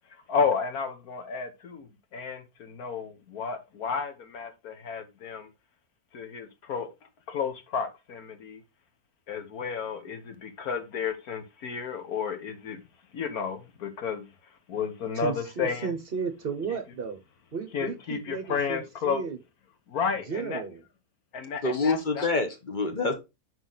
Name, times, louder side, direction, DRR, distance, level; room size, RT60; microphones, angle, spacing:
voice 1, 0.3-5.5 6.1-6.9 7.3-8.6 9.3-12.8 13.1-14.3 14.7-15.9 17.7-19.2 19.9-20.6 21.3-22.3, left 6 dB, 80° left, 1.7 m, -32 dB
voice 2, 15.1-17.2 17.5-19.4 20.3-20.8, right 5 dB, 45° right, 1.0 m, -34 dB
voice 3, 21.6-23.1, left 3 dB, 35° left, 1.2 m, -26 dB
6.0 x 4.9 x 3.9 m
omnidirectional pair, 1.5 m